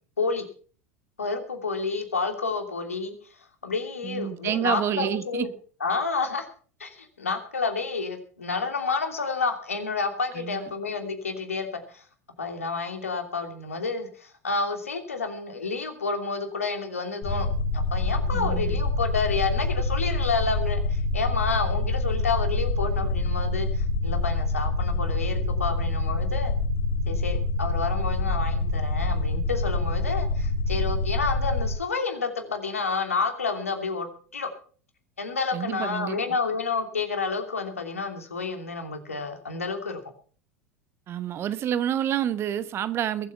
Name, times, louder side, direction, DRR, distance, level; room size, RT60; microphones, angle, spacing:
voice 1, 1.2-3.1 3.6-5.5 5.8-6.5 6.8-12.0 12.4-17.5 17.7-26.5 27.1-34.5 35.2-40.0, left 4 dB, 75° left, 2.9 m, -30 dB
voice 2, 4.0-5.5 10.3-10.7 18.3-18.8 35.5-36.2 41.1-43.3, right 10 dB, 35° right, 1.1 m, -28 dB
sound 1, 17.2-31.7, left 2 dB, 35° left, 4.3 m, -26 dB
22.0 x 8.3 x 5.6 m
figure-of-eight pair, 80°, 8 cm